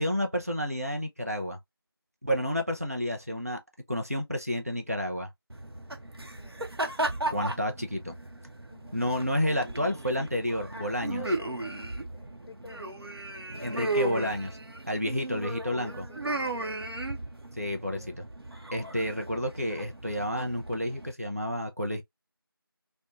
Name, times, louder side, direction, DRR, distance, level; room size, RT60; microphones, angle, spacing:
voice 1, 0.0-1.6 2.2-3.6 3.9-5.3 7.3-8.1 8.9-11.2 13.6-14.6 14.9-16.1 17.6-18.2 18.7-22.0, equal, 40° right, 0.4 m, -30 dB
sound 1, 5.5-21.1, right 2 dB, 80° right, 0.7 m, -36 dB
voice 2, 6.4-6.7 8.7-9.0 10.7-11.8 12.1-13.1 15.8-16.8 17.8-18.2 18.8-19.0, equal, 70° left, 0.5 m, -48 dB
3.0 x 2.1 x 2.3 m
figure-of-eight pair, 180°, 13 cm